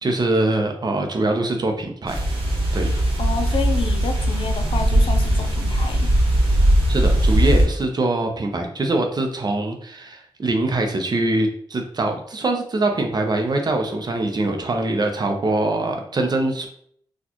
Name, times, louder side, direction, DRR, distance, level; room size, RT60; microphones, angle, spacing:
voice 1, 0.0-2.2 2.7-2.9 6.9-16.7, right 2 dB, 45° right, 4 dB, 0.7 m, -23 dB
sound 1, 2.1-7.6, right 1 dB, 80° right, 1.3 m, -19 dB
voice 2, 3.2-6.1, left 5 dB, 70° left, 6 dB, 0.5 m, -29 dB
4.2 x 2.4 x 2.9 m, 0.63 s
wide cardioid pair, 85°, 9 cm